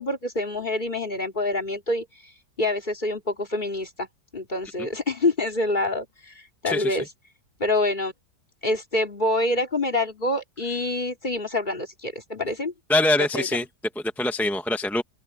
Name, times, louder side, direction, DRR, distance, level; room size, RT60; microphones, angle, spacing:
voice 1, 0.0-2.0 2.6-4.1 4.3-7.1 7.6-8.1 8.6-12.7 13.3-13.5, left 2 dB, 25° left, 2.8 m, -26 dB
voice 2, 6.6-7.1 12.9-13.6 13.9-15.0, left 1 dB, ahead, 1.0 m, -24 dB
open air
omnidirectional pair, 1.9 m